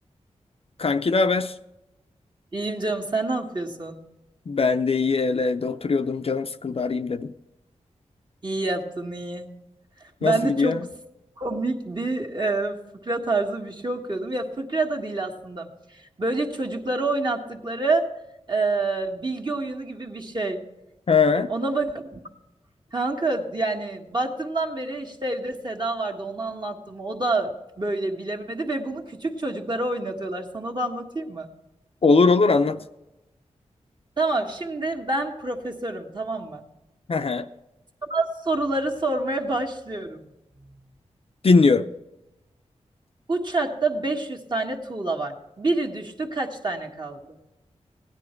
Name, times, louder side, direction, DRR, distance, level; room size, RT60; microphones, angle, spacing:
voice 1, 0.8-1.5 4.5-7.3 10.2-10.8 21.1-21.5 32.0-32.8 37.1-37.5 41.4-41.9, left 4 dB, 50° left, 9 dB, 0.6 m, -20 dB
voice 2, 2.5-4.0 8.4-9.5 10.0-10.9 11.4-18.1 18.5-20.6 21.5-22.2 22.9-31.5 34.2-36.6 38.1-40.2 40.6-40.8 43.3-47.4, right 2 dB, 35° right, 2 dB, 1.8 m, -27 dB
16.5 x 9.8 x 4.5 m, 0.96 s
cardioid pair, 50°, 12 cm